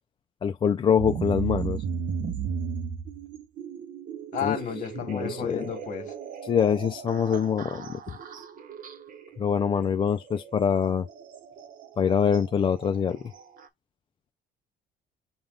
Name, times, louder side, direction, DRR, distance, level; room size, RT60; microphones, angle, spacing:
voice 1, 0.4-1.8 4.4-4.6 5.1-5.7 6.4-8.0 9.4-11.1 12.0-13.2, left 7 dB, 30° left, 0.4 m, -24 dB
sound 1, 1.0-13.7, right 7 dB, 55° right, 0.9 m, -36 dB
voice 2, 4.3-6.1, left 8 dB, 50° left, 1.7 m, -32 dB
5.3 x 2.4 x 3.8 m
cardioid pair, 110°, 17 cm